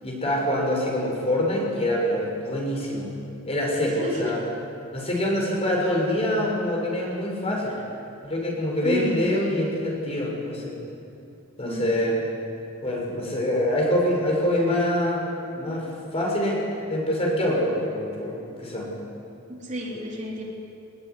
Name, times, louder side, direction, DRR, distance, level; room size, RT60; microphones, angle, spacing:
voice 1, 0.0-3.1 3.5-4.4 4.9-7.8 8.2-10.8 11.6-12.2 12.8-18.9 19.9-20.0, left 1 dB, 30° left, -1 dB, 6.2 m, -25 dB
voice 2, 3.8-4.4 8.8-9.3 11.6-11.9 19.6-20.4, equal, 35° right, -2 dB, 3.6 m, -31 dB
21.5 x 20.5 x 9.8 m, 2.7 s
head